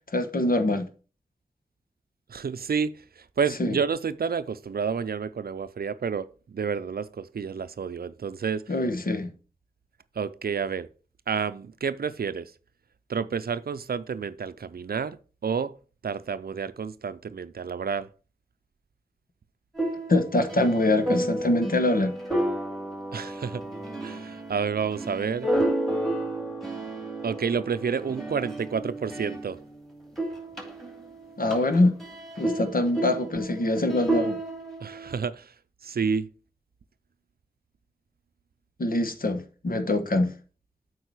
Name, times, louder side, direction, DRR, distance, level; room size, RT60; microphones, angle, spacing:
voice 1, 0.1-0.8 3.6-3.8 8.7-9.3 20.1-22.1 31.4-31.9 32.4-34.4 38.8-40.3, left 2 dB, 70° left, 1.1 m, -24 dB
voice 2, 2.3-3.0 3.4-8.6 10.2-10.9 11.3-12.5 13.1-15.2 15.4-15.7 16.0-18.1 23.1-23.6 24.0-25.5 27.2-29.6 34.8-35.5 35.8-36.3, right 6 dB, 80° right, 0.5 m, -29 dB
sound 1, 19.8-29.8 30.1-35.2, right 1 dB, ahead, 2.9 m, -32 dB
8.2 x 4.8 x 4.8 m
wide cardioid pair, 45°, 15 cm